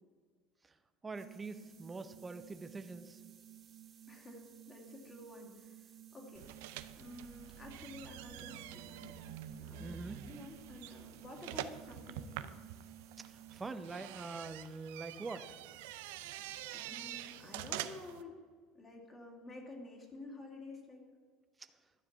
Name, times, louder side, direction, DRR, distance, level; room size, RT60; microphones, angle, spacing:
voice 1, 0.6-3.2 9.8-10.2 13.2-15.6 21.6-21.7, right 3 dB, 15° right, 10 dB, 0.6 m, -45 dB
sound 1, 1.1-14.0, right 11 dB, 30° right, 1.1 m, -56 dB
voice 2, 4.1-6.5 7.0-12.6 16.1-18.3 18.7-21.0, left 2 dB, 25° left, 0 dB, 2.2 m, -51 dB
sound 2, 6.3-18.2, right 12 dB, 90° right, 0.5 m, -46 dB
11.5 x 5.0 x 8.4 m, 1.5 s
cardioid pair, 135°, 0 cm